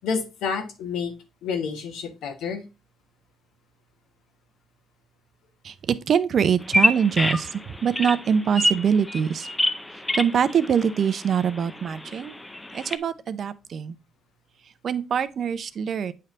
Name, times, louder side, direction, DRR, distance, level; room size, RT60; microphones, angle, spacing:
voice 1, 0.0-1.1 1.4-2.6, left 5 dB, 85° left, 1.3 m, -29 dB
voice 2, 5.6-9.5 10.1-12.4 12.7-14.0 14.8-16.1, right 7 dB, 55° right, 0.5 m, -24 dB
Bird vocalization bird call bird song, 6.6-13.0, left 1 dB, 15° left, 0.6 m, -28 dB
8.7 x 3.4 x 3.8 m
cardioid pair, 90°, 0 cm